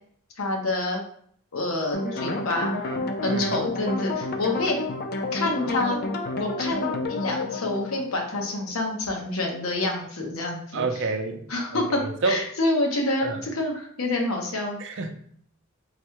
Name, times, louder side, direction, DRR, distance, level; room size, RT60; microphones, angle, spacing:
voice 1, 0.4-1.0 1.5-2.7 3.2-4.8 5.3-6.0 6.4-11.1 11.5-12.0 12.2-14.8, left 2 dB, 80° left, 1 dB, 0.9 m, -27 dB
sound 1, 1.9-8.9, left 2 dB, 50° left, 0.5 m, -30 dB
voice 2, 10.7-11.4 12.0-12.4 13.2-13.4 14.8-15.1, right 3 dB, 60° right, 6 dB, 0.5 m, -27 dB
4.1 x 2.2 x 4.5 m, 0.63 s
head